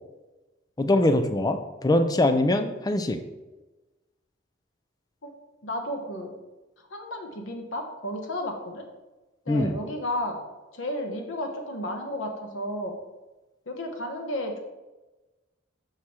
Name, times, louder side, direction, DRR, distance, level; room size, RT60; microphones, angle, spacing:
voice 1, 0.8-3.2 9.5-9.8, left 1 dB, 20° left, 8 dB, 0.4 m, -23 dB
voice 2, 5.6-6.3 6.9-8.8 9.5-10.4 10.7-13.0 13.7-14.6, left 1 dB, 80° left, 3 dB, 1.1 m, -32 dB
6.1 x 5.0 x 4.3 m, 1.1 s
head